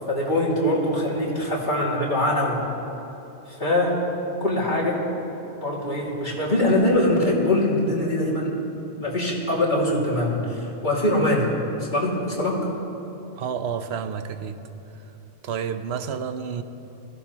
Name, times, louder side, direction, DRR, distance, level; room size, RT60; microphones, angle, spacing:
voice 1, 0.1-2.6 3.5-3.9 4.4-5.0 5.6-8.5 8.9-11.5 11.8-12.7, left 1 dB, 40° left, -5 dB, 2.6 m, -23 dB
voice 2, 13.4-14.6 15.4-16.6, right 7 dB, 65° right, 9 dB, 0.9 m, -30 dB
21.5 x 15.0 x 3.0 m, 2.9 s
omnidirectional pair, 1.2 m